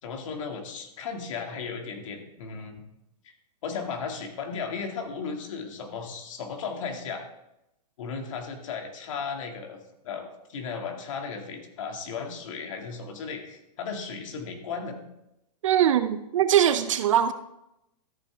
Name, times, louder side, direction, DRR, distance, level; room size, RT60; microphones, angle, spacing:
voice 1, 0.0-2.8 3.6-7.2 8.0-9.8 10.0-15.0, left 5 dB, 50° left, 2.1 m, -35 dB
voice 2, 15.6-17.3, right 10 dB, 50° right, 0.6 m, -21 dB
13.5 x 8.4 x 3.4 m
hypercardioid pair, 165°, 21 cm